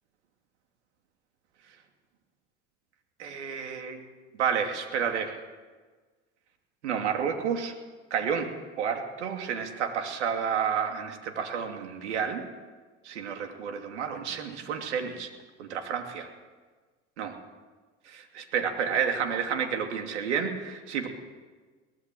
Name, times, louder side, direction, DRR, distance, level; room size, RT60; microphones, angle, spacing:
voice 1, 3.2-4.0 4.4-5.4 6.8-7.7 8.1-8.5 8.8-12.4 13.0-15.3 15.6-16.3 17.2-17.4 18.1-21.1, right 7 dB, 90° right, 4 dB, 2.8 m, -30 dB
23.0 x 18.0 x 7.7 m, 1.4 s
hypercardioid pair, 75°, 34 cm